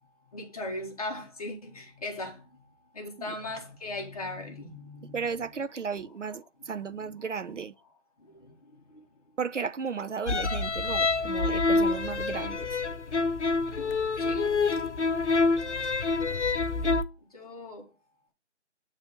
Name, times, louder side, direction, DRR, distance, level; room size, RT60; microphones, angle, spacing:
voice 1, 0.3-2.6 2.9-5.2 6.9-7.1 8.2-9.0 14.1-14.6 17.3-17.9, left 2 dB, 30° left, 1.4 m, -39 dB
voice 2, 5.1-7.7 9.4-12.8, right 6 dB, 85° right, 0.8 m, -34 dB
sound 1, 10.3-17.0, left 3 dB, 75° left, 0.8 m, -27 dB
9.0 x 3.4 x 5.2 m
figure-of-eight pair, 165°, 36 cm